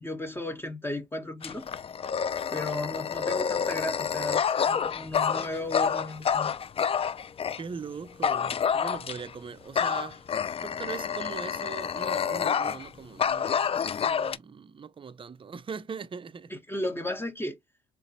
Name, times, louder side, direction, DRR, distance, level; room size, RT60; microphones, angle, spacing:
voice 1, 0.0-1.7 2.5-6.5 16.5-17.6, left 1 dB, 10° left, 0.9 m, -34 dB
Dog, 1.4-7.6 8.2-9.3 9.8-12.9 13.2-14.4, left 7 dB, 30° left, 0.4 m, -28 dB
voice 2, 7.4-10.3 10.6-16.5, right 6 dB, 25° right, 0.5 m, -40 dB
3.8 x 2.5 x 2.8 m
hypercardioid pair, 60°, 20 cm